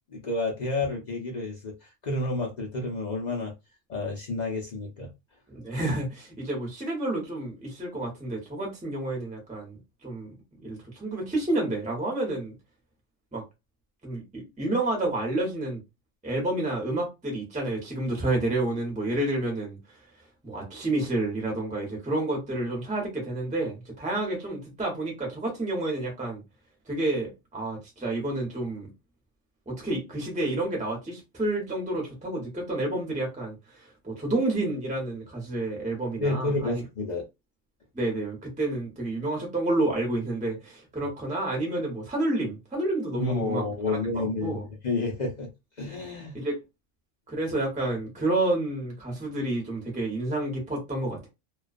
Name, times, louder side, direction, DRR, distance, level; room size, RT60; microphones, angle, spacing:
voice 1, 0.1-3.5 3.9-5.1 36.2-37.3 43.1-45.5 45.8-46.4, left 2 dB, 50° left, 0.5 m, -30 dB
voice 2, 5.5-10.3 10.6-12.6 13.3-13.4 14.0-15.8 16.2-20.0 20.4-26.4 26.9-28.9 29.7-36.8 37.9-44.7 46.3-46.6 47.3-51.3, right 2 dB, 5° right, 0.7 m, -30 dB
2.3 x 2.3 x 2.4 m
omnidirectional pair, 1.4 m